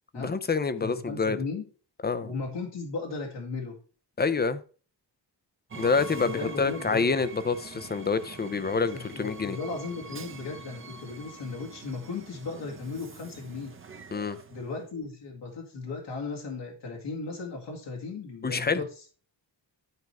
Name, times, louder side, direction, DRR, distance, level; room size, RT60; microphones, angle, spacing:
voice 1, 0.1-1.4 2.0-2.3 4.2-4.6 5.7-9.6 14.1-14.4 18.4-18.8, left 4 dB, 25° left, 0.5 m, -27 dB
voice 2, 0.8-1.6 2.2-3.8 6.2-7.1 8.9-13.7 14.5-18.9, left 4 dB, 80° left, 2.1 m, -36 dB
Train, 5.7-14.9, right 4 dB, 30° right, 0.8 m, -44 dB
11.0 x 4.6 x 4.6 m
wide cardioid pair, 165°, 42 cm